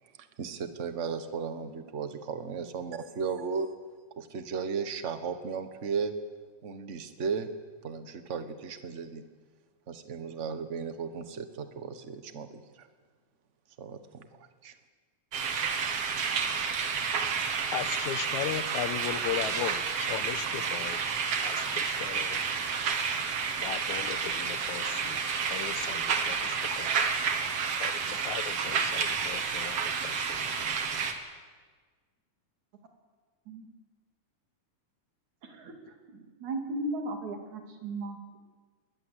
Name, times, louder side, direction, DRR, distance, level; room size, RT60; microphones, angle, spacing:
voice 1, 0.0-3.7 4.2-6.1 6.6-7.5 7.8-9.2 9.9-12.9 13.8-14.8, right 5 dB, 40° right, 9 dB, 1.0 m, -35 dB
sound 1, 15.3-31.1, right 6 dB, 60° right, 2.6 m, -30 dB
voice 2, 17.7-22.4 23.6-26.9 27.8-30.5, left 12 dB, 85° left, 13 dB, 2.3 m, -37 dB
voice 3, 35.4-35.8 36.1-38.4, right 2 dB, 75° right, 3 dB, 4.1 m, -36 dB
20.5 x 20.5 x 8.3 m, 1.5 s
omnidirectional pair, 3.3 m